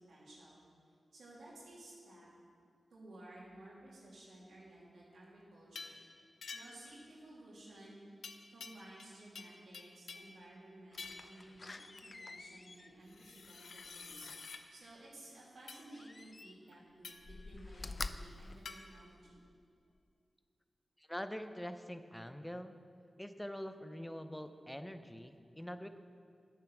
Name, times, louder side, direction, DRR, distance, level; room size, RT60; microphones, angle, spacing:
voice 1, 0.1-0.6 1.1-2.3 2.9-6.0 6.5-8.1 8.5-14.3 14.7-19.4, right 1 dB, 85° right, -6 dB, 3.0 m, -55 dB
sound 1, 5.7-6.0 6.4-6.9 8.2-9.1 9.3-10.4 11.0-11.4 13.1-14.6 15.7-15.9 17.0-17.3 18.6-18.8, left 4 dB, 85° left, 0.6 m, -49 dB
Slam, 10.9-14.8 15.9-16.8 17.2-19.5 20.0-20.1, left 3 dB, 45° left, 0.4 m, -48 dB
voice 2, 21.0-22.8 23.2-26.0, equal, 10° left, 9 dB, 0.7 m, -44 dB
9.5 x 8.5 x 6.1 m, 2.3 s
cardioid pair, 65°, 0 cm